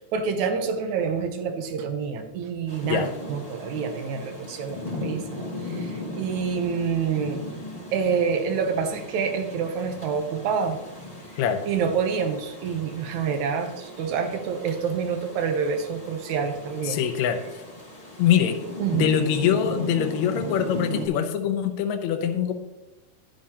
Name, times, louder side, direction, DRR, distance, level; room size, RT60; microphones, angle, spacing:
voice 1, 0.1-7.4 7.9-10.8 11.7-17.0 18.8-19.2, right 6 dB, 70° right, 6 dB, 2.0 m, -27 dB
Rain, 2.7-21.1, left 1 dB, 20° left, 0.9 m, -37 dB
voice 2, 16.8-17.4 18.2-18.6 19.0-22.5, left 9 dB, 70° left, 7 dB, 1.9 m, -23 dB
11.0 x 10.5 x 2.9 m, 1.0 s
omnidirectional pair, 3.9 m